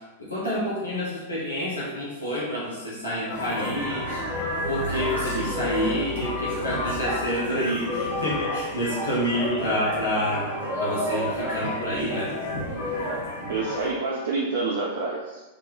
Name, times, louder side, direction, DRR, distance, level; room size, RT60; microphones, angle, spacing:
voice 1, 0.2-4.2 4.7-12.4, equal, 85° left, -8 dB, 1.1 m, -28 dB
sound 1, 3.3-13.9, left 1 dB, 60° left, 1.2 m, -30 dB
voice 2, 13.5-15.4, right 3 dB, 60° right, -4 dB, 0.6 m, -28 dB
3.5 x 2.9 x 3.8 m, 1.1 s
figure-of-eight pair, 95°, 0 cm